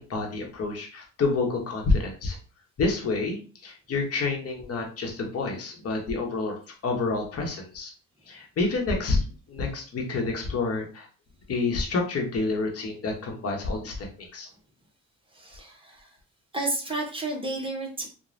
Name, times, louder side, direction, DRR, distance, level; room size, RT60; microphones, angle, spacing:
voice 1, 0.0-2.4 2.8-7.9 8.3-11.1 11.5-14.5, left 3 dB, 50° left, 1 dB, 0.9 m, -28 dB
voice 2, 15.3-16.2 16.5-18.1, right 2 dB, 15° right, -1 dB, 0.9 m, -32 dB
3.1 x 2.2 x 2.5 m, 0.36 s
cardioid pair, 90°, 30 cm